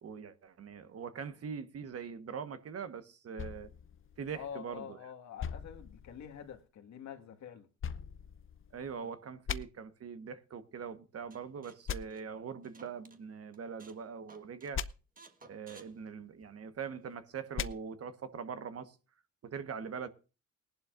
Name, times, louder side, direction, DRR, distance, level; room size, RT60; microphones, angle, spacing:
voice 1, 0.0-3.7 4.2-5.0 8.7-14.8 15.4-19.0 19.4-20.1, right 6 dB, 50° right, 1.3 m, -42 dB
sound 1, 3.4-4.8 5.4-6.6 7.8-9.0 9.5-9.6 11.9-12.0 14.7-14.9 17.5-17.7, left 8 dB, 45° left, 0.7 m, -40 dB
voice 2, 4.3-7.7 9.0-9.1, left 8 dB, 65° left, 1.9 m, -46 dB
sound 2, 11.3-13.2 13.5-14.0 14.3-14.7 15.2-16.8, right 4 dB, 30° right, 1.4 m, -58 dB
19.0 x 11.5 x 2.5 m
cardioid pair, 90°, 30 cm